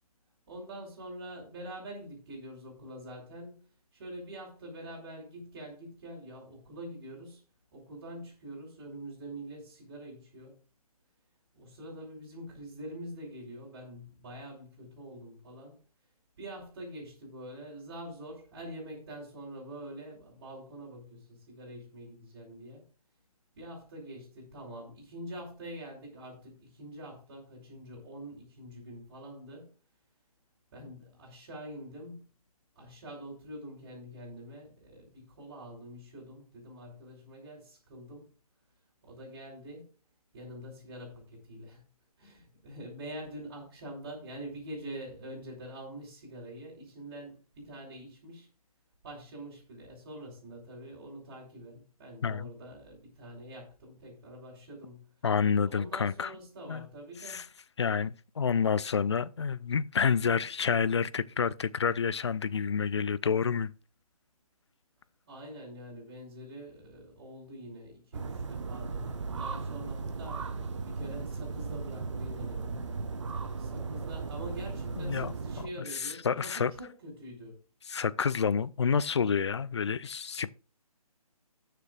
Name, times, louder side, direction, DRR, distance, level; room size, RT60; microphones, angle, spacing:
voice 1, 0.5-3.7 3.9-7.4 7.7-10.6 11.5-15.8 16.4-22.8 23.6-29.7 30.7-32.3 32.7-38.3 39.0-39.9 40.3-41.8 42.2-48.5 49.0-55.1 55.6-57.5 65.3-72.9 73.6-77.6, right 1 dB, 35° right, 4.3 m, -45 dB
voice 2, 55.2-56.3 56.7-56.9 57.2-57.5 57.8-63.7 75.0-75.3 75.9-76.7 77.9-80.5, left 6 dB, 45° left, 0.5 m, -29 dB
sound 1, 68.1-75.7, right 4 dB, 50° right, 1.0 m, -36 dB
19.0 x 6.8 x 2.5 m
figure-of-eight pair, 145°, 20 cm